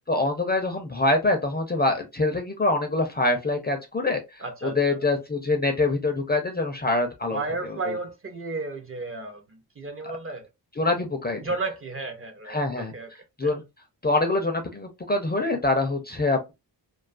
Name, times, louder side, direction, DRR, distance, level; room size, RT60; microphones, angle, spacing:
voice 1, 0.1-4.2 4.6-7.4 10.8-11.4 12.5-12.9 13.4-13.6 14.0-16.5, left 2 dB, 25° left, 0.4 m, -24 dB
voice 2, 4.4-5.1 7.3-10.5 11.4-13.1 13.4-13.6, right 3 dB, 35° right, 0.5 m, -33 dB
2.3 x 2.3 x 2.4 m
wide cardioid pair, 130°, 43 cm